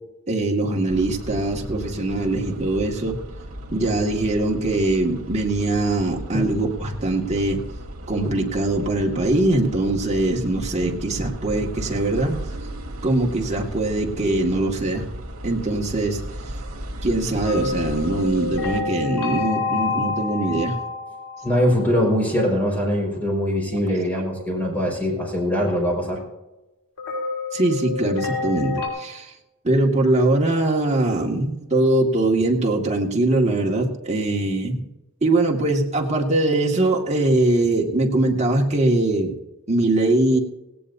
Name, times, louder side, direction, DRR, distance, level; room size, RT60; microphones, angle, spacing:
voice 1, 0.3-3.2 3.7-7.6 8.1-12.4 13.0-15.1 15.4-16.2 17.0-20.8 23.9-24.0 27.5-29.3 29.6-34.8 35.2-39.3 39.7-40.4, right 2 dB, 30° right, -1 dB, 1.9 m, -22 dB
sound 1, 0.9-18.8, right 1 dB, 65° right, 2.6 m, -36 dB
sound 2, 17.4-22.3 27.0-28.9, left 4 dB, 85° left, 4.3 m, -28 dB
voice 2, 21.4-26.2, equal, 10° left, -1 dB, 5.0 m, -22 dB
17.5 x 17.5 x 2.7 m, 1.0 s
head